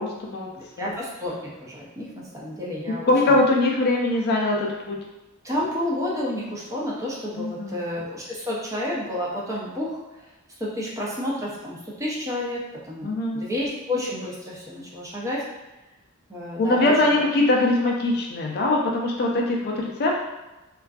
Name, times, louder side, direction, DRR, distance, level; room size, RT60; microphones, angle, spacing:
voice 1, 0.0-0.5 0.8-0.9 2.9-5.0 7.4-7.8 13.0-13.4 16.6-20.2, left 2 dB, 50° left, 0 dB, 0.4 m, -22 dB
voice 2, 0.6-3.1 5.4-10.0 10.6-15.4 16.3-16.9, left 1 dB, 15° right, -5 dB, 0.5 m, -30 dB
2.5 x 2.3 x 2.3 m, 1.1 s
head